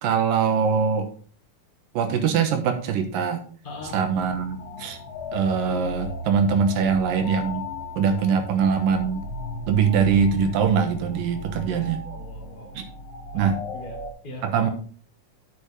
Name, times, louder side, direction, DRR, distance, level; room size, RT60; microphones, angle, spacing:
voice 1, 0.0-1.1 1.9-3.4 3.9-5.0 5.3-7.7 8.0-9.3 9.7-12.0 12.7-12.8 13.3-13.6 14.4-14.7, right 6 dB, 75° right, 6 dB, 2.7 m, -22 dB
voice 2, 3.6-4.0 11.5-12.7 13.3-14.0 14.2-14.5, left 2 dB, 25° left, -1 dB, 1.3 m, -41 dB
sound 1, 3.8-14.1, left 2 dB, 75° left, 2.8 m, -36 dB
9.9 x 6.7 x 3.6 m, 0.43 s
omnidirectional pair, 4.1 m